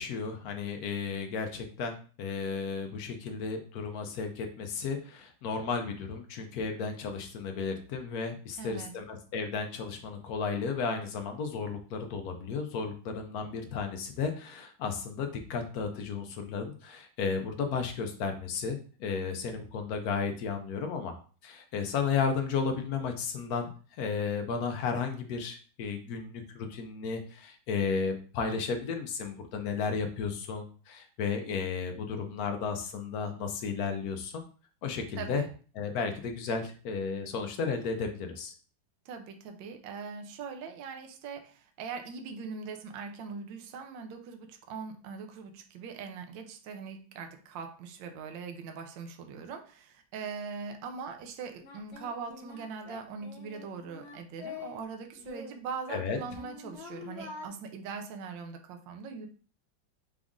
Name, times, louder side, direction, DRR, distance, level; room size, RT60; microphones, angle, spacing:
voice 1, 0.0-21.1 21.4-23.7 24.0-34.4 34.8-35.4 35.7-38.5 55.9-56.2, left 5 dB, 70° left, 5 dB, 0.9 m, -33 dB
voice 2, 8.6-8.9 35.2-35.5 39.0-59.3, right 5 dB, 75° right, 5 dB, 1.4 m, -41 dB
Singing, 51.0-51.1 51.6-54.8 55.2-57.5, left 4 dB, 40° left, 1.1 m, -46 dB
5.0 x 2.5 x 3.6 m, 0.39 s
omnidirectional pair, 2.1 m